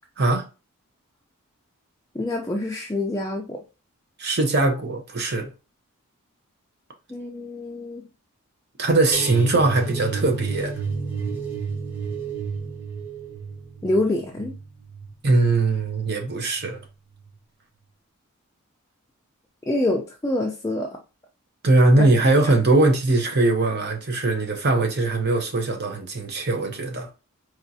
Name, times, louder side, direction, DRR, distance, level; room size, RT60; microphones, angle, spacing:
voice 1, 2.2-3.6 7.1-8.0 13.8-14.5 19.7-20.9 22.0-22.1, left 1 dB, 15° left, 0.4 m, -26 dB
voice 2, 4.2-5.5 8.8-10.7 15.2-16.8 21.6-27.1, right 2 dB, 45° right, 0.7 m, -21 dB
sound 1, 9.1-16.2 16.5-16.8 17.2-17.3, right 4 dB, 10° right, 0.8 m, -31 dB
4.4 x 2.4 x 2.6 m
head